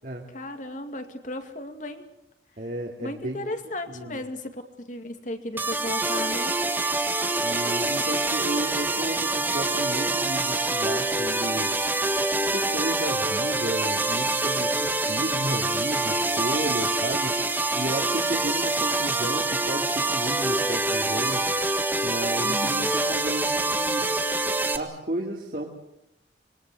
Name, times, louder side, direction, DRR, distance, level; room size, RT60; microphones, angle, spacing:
voice 1, 0.3-2.0 3.0-6.6 22.4-22.9, left 1 dB, 45° left, 6 dB, 2.4 m, -35 dB
voice 2, 2.6-3.4 3.9-4.2 7.4-11.7 12.5-21.5 22.0-24.1 24.7-25.7, right 1 dB, 50° right, -1 dB, 2.7 m, -33 dB
sound 1, 5.6-24.8, right 2 dB, 10° right, 1.5 m, -25 dB
25.5 x 22.5 x 7.8 m, 0.82 s
head